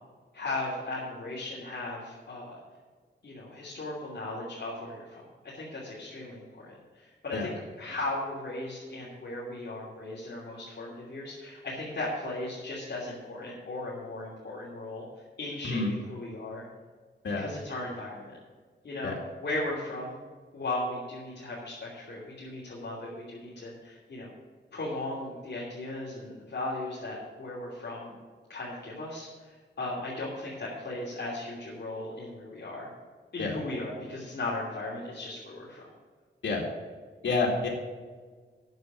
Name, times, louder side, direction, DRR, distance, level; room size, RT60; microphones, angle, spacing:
voice 1, 0.3-2.6 3.2-15.0 15.4-16.7 17.4-18.4 18.8-19.1 19.4-20.2 20.5-24.3 24.7-28.1 28.5-32.9 33.3-35.8, left 2 dB, 60° left, -6 dB, 3.0 m, -37 dB
voice 2, 37.2-37.7, left 3 dB, 80° left, -2 dB, 2.2 m, -28 dB
9.4 x 7.2 x 8.3 m, 1.5 s
wide cardioid pair, 90°, 19 cm